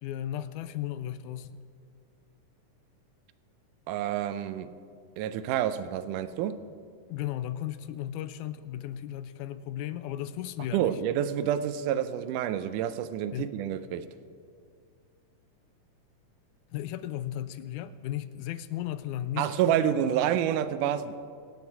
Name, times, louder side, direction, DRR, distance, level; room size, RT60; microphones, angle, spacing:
voice 1, 0.0-1.6 7.1-11.0 13.3-13.5 16.7-19.5, left 12 dB, 80° left, 13 dB, 1.9 m, -35 dB
voice 2, 3.9-4.7 5.2-6.6 10.7-14.0 19.4-21.2, right 10 dB, 80° right, 12 dB, 2.2 m, -28 dB
25.0 x 9.2 x 4.7 m, 2.2 s
omnidirectional pair, 3.7 m